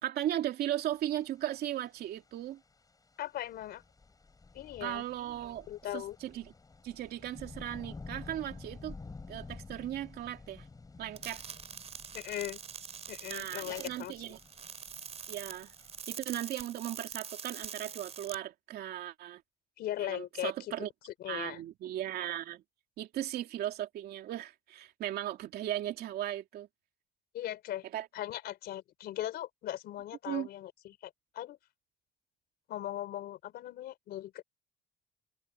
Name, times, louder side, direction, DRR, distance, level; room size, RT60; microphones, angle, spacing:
voice 1, 0.0-2.6 4.8-5.7 5.9-6.5 6.8-9.0 9.3-10.7 11.0-11.4 13.3-14.4 15.3-15.7 16.1-19.4 20.0-20.9 21.3-22.6 23.0-26.7 27.9-28.1 30.3-30.5, right 12 dB, 70° right, 2.8 m, -37 dB
sound 1, 0.8-16.0, left 3 dB, 20° left, 7.9 m, -51 dB
voice 2, 3.2-3.8 4.5-5.0 5.7-6.2 12.1-12.6 13.1-14.4 19.8-20.7 21.0-21.6 27.3-27.8 28.1-31.6 32.7-34.4, left 13 dB, 70° left, 3.8 m, -39 dB
sound 2, 11.2-18.3, right 6 dB, 40° right, 4.4 m, -44 dB
cardioid pair, 110°, 17 cm